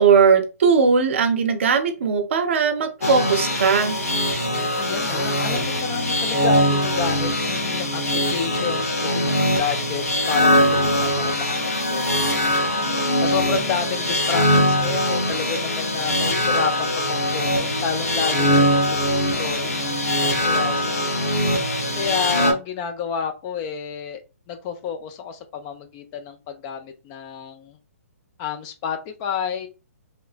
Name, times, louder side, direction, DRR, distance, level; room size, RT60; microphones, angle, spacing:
voice 1, 0.0-4.0, right 6 dB, 50° right, 8 dB, 0.6 m, -18 dB
sound 1, 3.0-22.5, left 1 dB, 75° left, 0.9 m, -22 dB
voice 2, 4.7-8.0 8.3-21.3 21.9-24.2 24.5-27.8 28.4-29.7, left 7 dB, 25° left, 6 dB, 0.4 m, -30 dB
3.0 x 2.1 x 2.4 m, 0.29 s
figure-of-eight pair, 130°, 8 cm